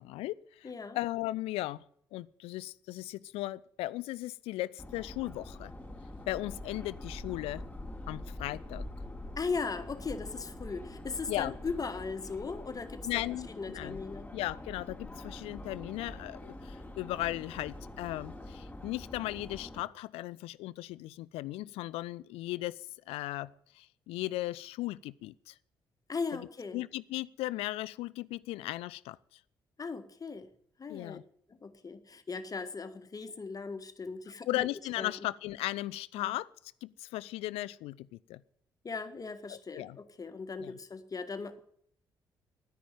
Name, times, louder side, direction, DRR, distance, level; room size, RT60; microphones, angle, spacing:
voice 1, 0.0-1.8 2.1-5.7 6.3-7.6 8.1-8.9 11.3-11.5 13.0-14.0 14.3-22.8 23.1-25.5 26.3-26.5 26.7-29.2 30.9-31.2 34.5-36.5 36.8-38.4 39.5-40.0 40.6-40.8, left 17 dB, 65° left, 20 dB, 0.5 m, -37 dB
voice 2, 0.6-1.0 9.4-13.2 13.5-14.3 26.1-26.8 29.8-30.5 30.8-31.2 31.5-34.7 35.0-35.1 36.2-36.3 38.8-41.6, left 4 dB, 35° left, 10 dB, 1.6 m, -38 dB
Subway metro underground, 4.8-19.8, left 1 dB, 15° left, 4.0 m, -45 dB
10.5 x 10.0 x 9.0 m, 0.66 s
figure-of-eight pair, 45°, 11 cm